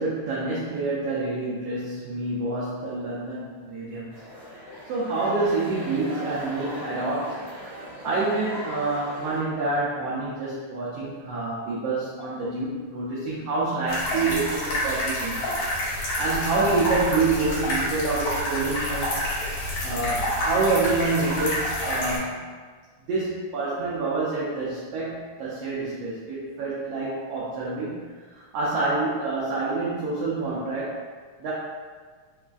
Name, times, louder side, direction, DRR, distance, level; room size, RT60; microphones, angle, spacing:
voice 1, 0.0-4.1 4.9-7.4 8.0-15.6 16.2-19.2 19.8-22.5 23.1-28.0 28.3-31.0 31.4-31.5, right 3 dB, 90° right, -7 dB, 1.3 m, -27 dB
sound 1, 4.1-9.4, equal, 60° right, 1.0 m, -39 dB
sound 2, 13.9-22.2, left 1 dB, 65° left, 1.8 m, -28 dB
4.7 x 2.3 x 2.3 m, 1.5 s
omnidirectional pair, 3.4 m